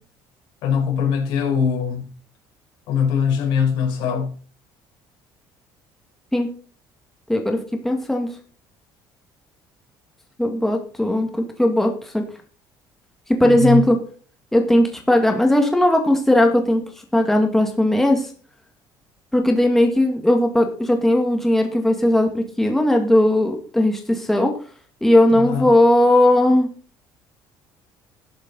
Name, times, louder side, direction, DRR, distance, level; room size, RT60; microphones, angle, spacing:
voice 1, 0.6-2.1 2.9-4.3 13.4-13.8 25.3-25.7, left 7 dB, 75° left, 4.4 m, -22 dB
voice 2, 7.3-8.3 10.4-12.2 13.3-14.0 14.5-16.8 17.1-18.3 19.3-24.5 25.0-26.7, left 1 dB, 5° left, 1.9 m, -18 dB
13.0 x 11.0 x 4.1 m
cardioid pair, 155°, 8 cm